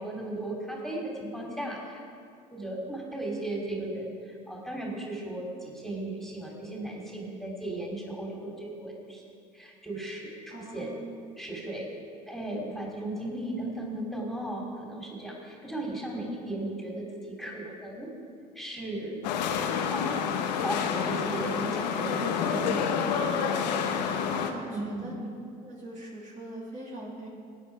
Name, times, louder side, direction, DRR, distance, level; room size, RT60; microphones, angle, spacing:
voice 1, 0.0-2.0 2.5-9.2 9.5-10.9 11.4-11.9 12.3-18.1 18.5-19.2 19.9-20.2 20.6-23.1 24.7-25.2, right 1 dB, ahead, -2 dB, 3.3 m, -36 dB
voice 2, 10.5-11.2 23.8-25.3 25.6-27.3, right 1 dB, 35° right, -4 dB, 2.9 m, -42 dB
sound 1, 19.2-24.5, left 7 dB, 85° left, 1.0 m, -28 dB
16.5 x 9.1 x 4.9 m, 2.3 s
hypercardioid pair, 70°, 21 cm